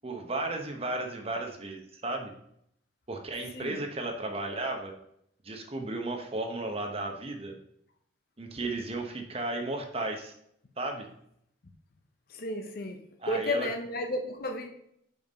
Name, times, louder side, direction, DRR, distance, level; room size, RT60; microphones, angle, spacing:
voice 1, 0.0-2.3 3.1-4.9 5.4-7.5 8.4-10.3 10.8-11.1 13.2-13.7, right 2 dB, 30° right, 4 dB, 0.9 m, -34 dB
voice 2, 12.3-13.0 13.3-14.7, left 1 dB, 50° left, 5 dB, 0.7 m, -32 dB
5.4 x 4.7 x 5.1 m, 0.72 s
head